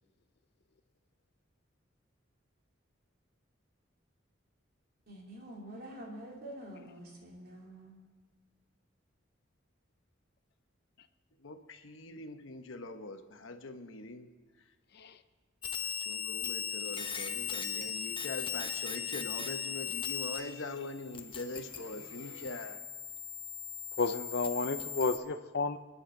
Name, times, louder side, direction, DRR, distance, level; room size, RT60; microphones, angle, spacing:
voice 1, 5.1-8.0, right 1 dB, 50° right, -2 dB, 3.3 m, -47 dB
voice 2, 11.4-14.3 15.8-22.8, left 2 dB, 80° left, 7 dB, 1.1 m, -43 dB
sound 1, 15.6-20.4 20.7-25.2, left 8 dB, 25° left, 1.0 m, -38 dB
voice 3, 24.0-25.8, left 4 dB, 55° left, 10 dB, 0.6 m, -32 dB
27.0 x 11.0 x 3.9 m, 1.3 s
head